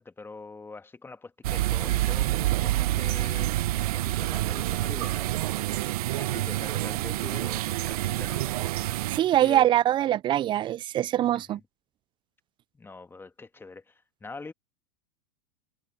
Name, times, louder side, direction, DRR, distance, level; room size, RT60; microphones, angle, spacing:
voice 1, 0.0-8.7 9.4-9.7 11.3-11.6 12.7-14.5, left 3 dB, 10° left, 1.7 m, -44 dB
sound 1, 1.4-9.2, right 16 dB, 65° right, 1.0 m, -27 dB
voice 2, 9.1-11.6, right 12 dB, 25° right, 0.4 m, -23 dB
hypercardioid pair, 105°, 20 cm